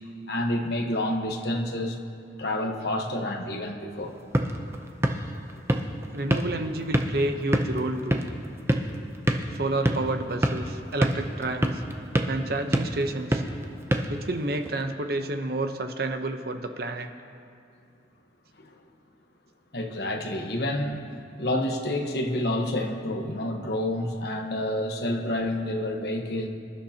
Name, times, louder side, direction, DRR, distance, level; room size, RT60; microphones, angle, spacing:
voice 1, 0.3-2.0 2.4-4.2 18.6-18.7 19.7-21.0 21.4-26.5, left 1 dB, 60° left, 3 dB, 1.2 m, -28 dB
sound 1, 4.0-14.8, right 1 dB, 15° right, 0.6 m, -29 dB
voice 2, 6.1-8.2 9.5-11.8 12.3-13.4 14.1-17.1 24.7-24.9, right 2 dB, 55° right, 6 dB, 0.9 m, -30 dB
25.5 x 11.5 x 2.9 m, 2.4 s
head